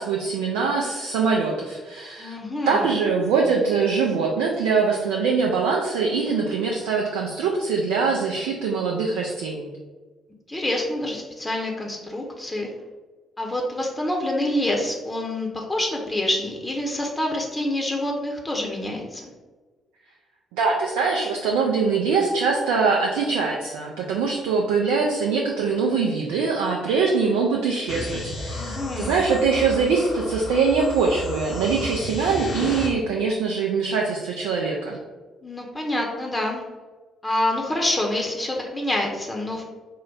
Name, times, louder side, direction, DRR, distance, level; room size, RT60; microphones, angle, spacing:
voice 1, 0.0-2.4 2.7-9.7 20.5-35.0, right 5 dB, 70° right, 0 dB, 0.4 m, -23 dB
voice 2, 2.2-2.9 10.5-12.7 13.4-19.3 28.5-29.2 35.4-36.6 37.2-39.6, left 1 dB, 20° left, 0 dB, 0.7 m, -27 dB
sound 1, 27.9-32.9, left 2 dB, 50° left, 0.7 m, -33 dB
3.7 x 2.1 x 3.9 m, 1.3 s
figure-of-eight pair, 45°, 0 cm